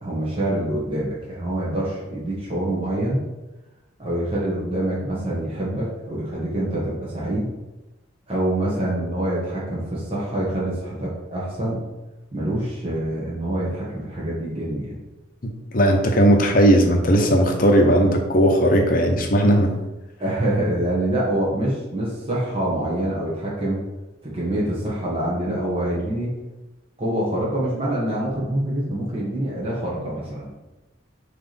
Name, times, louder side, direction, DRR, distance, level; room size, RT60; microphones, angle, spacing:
voice 1, 0.0-3.2 4.0-7.5 8.3-11.8 12.3-15.0 20.2-23.8 24.2-26.4 27.0-30.5, right 1 dB, 30° right, -7 dB, 1.7 m, -25 dB
voice 2, 15.7-19.7, equal, 45° left, 3 dB, 0.9 m, -17 dB
7.4 x 3.4 x 4.3 m, 1.0 s
head